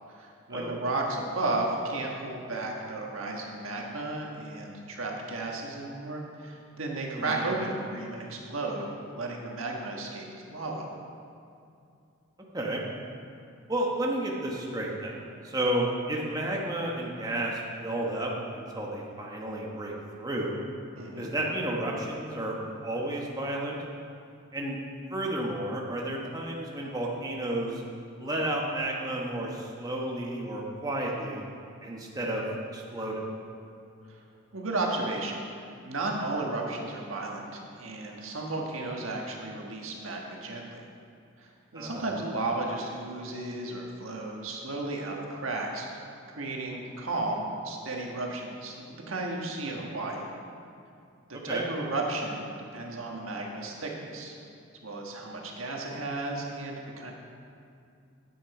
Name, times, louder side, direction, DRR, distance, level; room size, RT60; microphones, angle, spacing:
voice 1, 0.1-10.9 20.9-21.3 34.1-34.2 34.5-40.8 41.4-45.9 46.3-50.3 51.3-54.3 54.8-57.1, right 2 dB, 75° right, 0 dB, 1.5 m, -34 dB
voice 2, 7.1-7.5 12.5-12.8 13.7-20.6 21.2-22.5 22.8-23.8 24.5-24.8 25.1-27.8 28.2-31.4 31.8-32.4 32.7-33.3 41.7-42.0 51.5-51.6, right 1 dB, 20° right, -2 dB, 1.1 m, -32 dB
9.6 x 8.7 x 4.9 m, 2.5 s
head